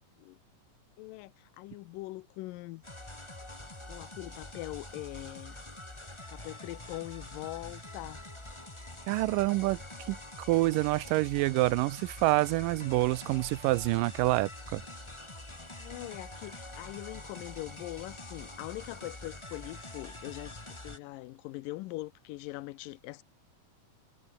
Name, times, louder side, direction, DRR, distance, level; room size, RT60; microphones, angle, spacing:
voice 1, 1.0-2.8 3.9-5.6 6.3-8.2 15.8-23.2, left 19 dB, 90° left, 2.4 m, -42 dB
sound 1, 2.8-21.0, left 1 dB, 10° left, 2.4 m, -45 dB
voice 2, 9.1-9.8 10.1-10.2 10.5-14.8, right 19 dB, 85° right, 2.3 m, -27 dB
omnidirectional pair, 3.8 m